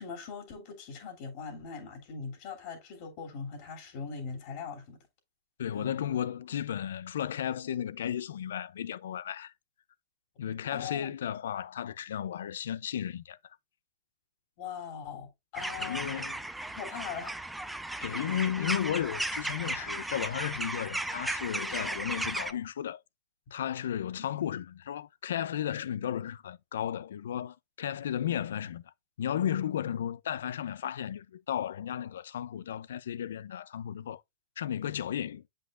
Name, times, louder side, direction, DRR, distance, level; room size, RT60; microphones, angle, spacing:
voice 1, 0.0-5.0 5.7-5.9 10.7-11.1 14.6-16.2 16.8-17.4 18.2-18.4 19.6-19.7, left 6 dB, 45° left, 2.9 m, -41 dB
voice 2, 5.6-9.5 10.4-13.4 15.8-16.5 18.0-23.0 23.5-28.9 29.2-34.2 34.6-35.4, left 10 dB, 80° left, 0.5 m, -34 dB
sound 1, 15.5-22.5, right 1 dB, 5° right, 0.5 m, -35 dB
8.0 x 5.3 x 2.5 m
hypercardioid pair, 145°, 0 cm